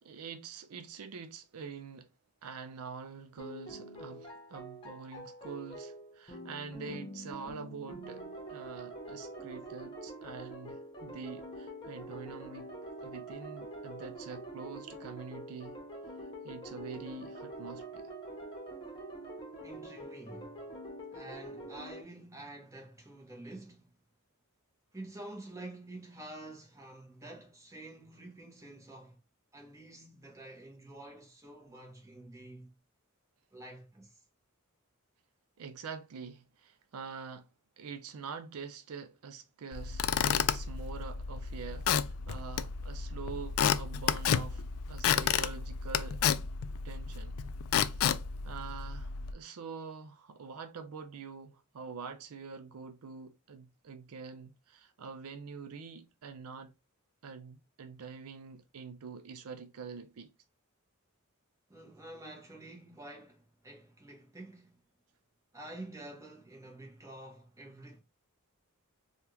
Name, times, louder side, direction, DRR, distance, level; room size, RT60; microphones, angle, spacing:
voice 1, 0.0-2.1 2.4-12.7 13.0-15.8 16.2-18.1 35.6-37.5 37.8-46.2 46.8-47.4 47.7-48.2 48.4-56.7 57.2-60.3, right 5 dB, 75° right, 0.4 m, -45 dB
sound 1, 3.4-22.0, right 1 dB, 20° left, 1.0 m, -45 dB
voice 2, 19.6-20.5 21.1-24.0 24.9-29.2 29.5-32.7 33.5-34.2 61.7-64.8 65.5-68.0, right 1 dB, 15° right, 1.1 m, -48 dB
Squeak / Wood, 39.7-49.3, left 8 dB, 65° left, 0.3 m, -31 dB
3.4 x 2.4 x 2.7 m
head